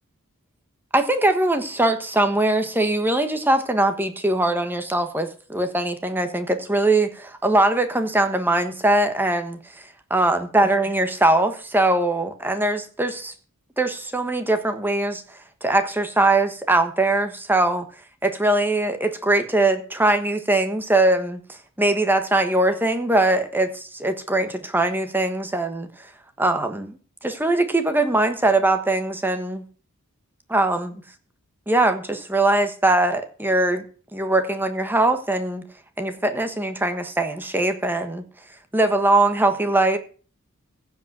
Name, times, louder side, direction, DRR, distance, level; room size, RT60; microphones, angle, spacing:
voice 1, 0.9-13.3 13.8-17.8 18.2-26.1 26.4-29.6 30.5-31.0 31.7-33.8 34.1-35.6 36.0-38.2 38.7-40.0, right 2 dB, 10° right, 7 dB, 1.3 m, -21 dB
15.5 x 5.2 x 7.9 m, 0.41 s
head